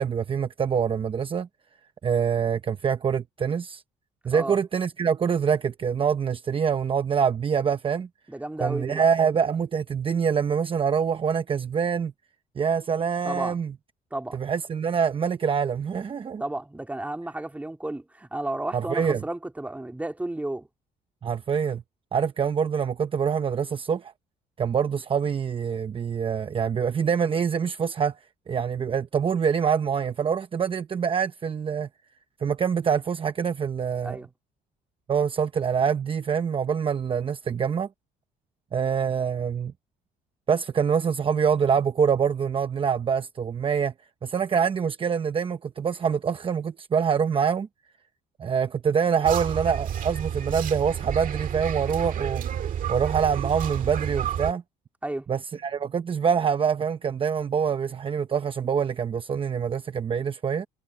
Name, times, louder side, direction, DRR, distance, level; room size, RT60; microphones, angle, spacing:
voice 1, 0.0-1.5 2.0-3.8 4.2-8.1 8.6-12.1 12.6-13.7 14.3-16.4 18.7-19.2 21.2-21.8 22.1-24.1 24.6-28.2 28.5-31.9 32.4-34.2 35.1-37.9 38.7-39.7 40.5-43.9 44.2-47.7 48.4-52.4 52.9-54.6 55.3-60.7, right 7 dB, 30° right, 0.9 m, -25 dB
voice 2, 8.3-9.1 13.2-13.6 14.1-14.4 16.4-20.7 34.0-34.3 55.0-55.3, right 1 dB, 10° right, 2.7 m, -32 dB
sound 1, 49.2-54.5, right 9 dB, 55° right, 1.9 m, -30 dB
cardioid pair, 110°, 17 cm